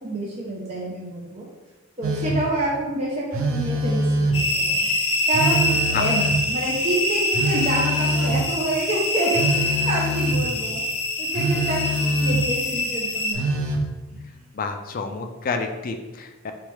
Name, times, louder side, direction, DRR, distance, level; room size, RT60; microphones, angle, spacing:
voice 1, 0.0-1.5 2.0-4.9 5.3-10.8 11.2-13.4 14.1-14.2, right 1 dB, 35° right, -5 dB, 0.6 m, -28 dB
Telephone, 2.0-2.6 3.3-4.6 5.3-6.6 7.3-8.6 9.3-10.5 11.3-12.6 13.3-13.9, right 1 dB, 90° right, 0.6 m, -24 dB
sound 1, 4.3-13.3, left 2 dB, 90° left, 0.7 m, -25 dB
voice 2, 14.6-16.5, left 4 dB, 45° left, 5 dB, 0.4 m, -29 dB
3.8 x 3.4 x 3.1 m, 1.1 s
head